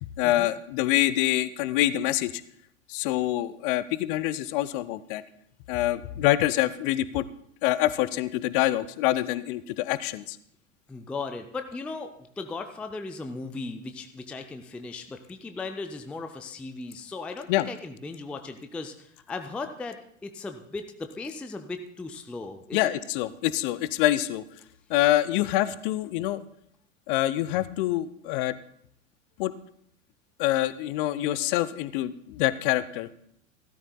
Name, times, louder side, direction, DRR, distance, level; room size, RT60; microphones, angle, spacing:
voice 1, 0.0-2.4 2.9-5.2 5.7-7.2 7.6-10.4 17.5-17.7 22.7-24.4 24.9-26.4 27.1-28.5 29.4-29.5 30.4-33.1, left 15 dB, 45° left, 16 dB, 0.6 m, -26 dB
voice 2, 10.9-22.9, left 3 dB, 5° left, 7 dB, 0.4 m, -37 dB
15.5 x 13.0 x 2.2 m, 0.68 s
figure-of-eight pair, 90°, 39 cm